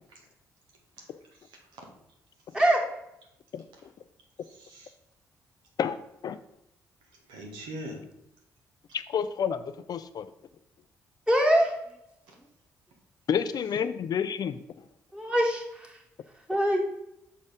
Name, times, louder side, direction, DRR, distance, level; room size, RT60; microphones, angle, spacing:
voice 1, 1.0-1.8 2.5-2.6 3.7-3.8 4.4-4.9 7.3-8.0 12.3-12.4, right 1 dB, 75° right, 1 dB, 1.5 m, -43 dB
voice 2, 8.9-10.3 13.3-14.6, left 7 dB, 55° left, 13 dB, 0.4 m, -29 dB
voice 3, 11.3-11.7 15.1-16.0 16.5-16.8, right 1 dB, 10° right, -1 dB, 2.2 m, -23 dB
6.1 x 4.2 x 5.0 m, 0.82 s
hypercardioid pair, 50°, 8 cm